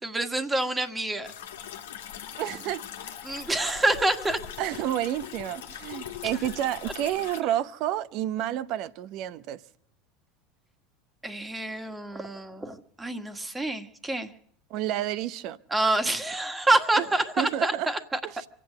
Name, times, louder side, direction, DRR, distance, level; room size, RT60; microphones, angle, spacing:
voice 1, 0.0-1.3 3.2-4.4 11.2-14.3 15.7-18.2, right 2 dB, 15° right, 1.6 m, -27 dB
sound 1, 1.2-7.4, left 9 dB, 85° left, 1.5 m, -41 dB
voice 2, 2.4-2.8 4.6-9.6 14.7-15.6 17.0-17.1 17.4-17.9 18.2-18.5, right 12 dB, 60° right, 0.7 m, -30 dB
25.0 x 8.5 x 6.6 m
hypercardioid pair, 90°, 0 cm